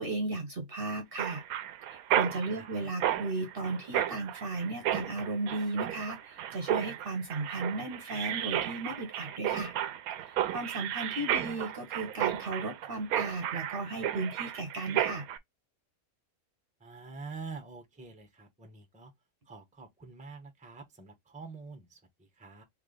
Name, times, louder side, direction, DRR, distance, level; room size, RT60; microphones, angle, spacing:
voice 1, 0.0-1.4 1.9-9.7 10.2-15.2, right 2 dB, 45° right, 1.0 m, -35 dB
Mechanisms, 1.2-15.4, right 11 dB, 85° right, 1.1 m, -33 dB
voice 2, 16.8-19.1 19.5-22.6, right 4 dB, 5° right, 0.8 m, -46 dB
3.3 x 3.2 x 3.8 m
omnidirectional pair, 1.5 m